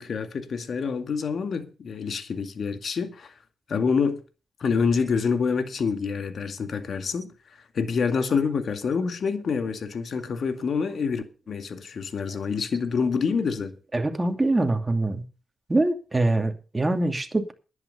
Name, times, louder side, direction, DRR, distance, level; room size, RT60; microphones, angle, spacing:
voice 1, 0.0-3.3 3.7-4.2 4.6-7.3 7.7-13.7, left 5 dB, 60° left, 2.1 m, -27 dB
voice 2, 13.9-15.2 15.7-17.5, right 2 dB, 25° right, 2.5 m, -24 dB
11.0 x 9.3 x 6.7 m
supercardioid pair, 45°, 0 cm